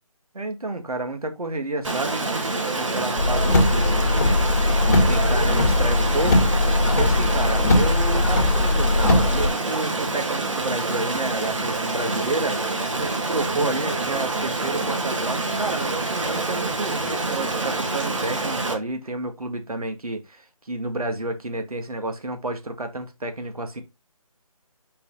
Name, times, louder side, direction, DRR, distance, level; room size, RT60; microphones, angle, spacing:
voice 1, 0.3-6.5 6.9-23.8, right 2 dB, 75° right, 1.9 m, -30 dB
Stream, 1.8-18.7, right 3 dB, 55° right, 2.4 m, -27 dB
Car, 3.2-9.5, left 2 dB, 30° left, 2.0 m, -20 dB
6.0 x 4.7 x 4.0 m
figure-of-eight pair, 165°, 19 cm